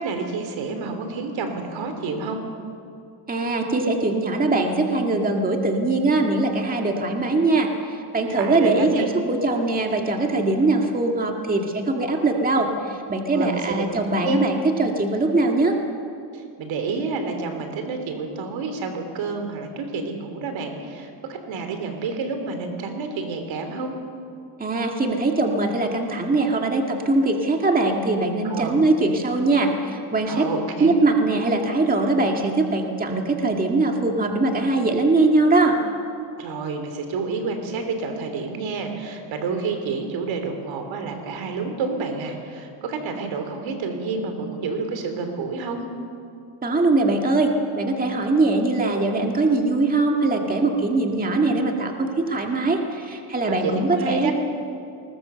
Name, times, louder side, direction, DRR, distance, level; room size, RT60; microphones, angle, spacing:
voice 1, 0.0-2.4 8.3-9.1 13.3-13.8 14.2-14.4 16.3-23.9 28.4-28.8 30.3-30.9 36.3-45.8 53.4-54.3, right 4 dB, 75° right, 6 dB, 3.2 m, -29 dB
voice 2, 3.3-15.7 24.6-30.4 30.8-35.8 46.6-47.5 47.8-54.3, right 2 dB, 20° right, 2 dB, 1.9 m, -21 dB
20.5 x 20.0 x 6.8 m, 2.5 s
cardioid pair, 125°, 46 cm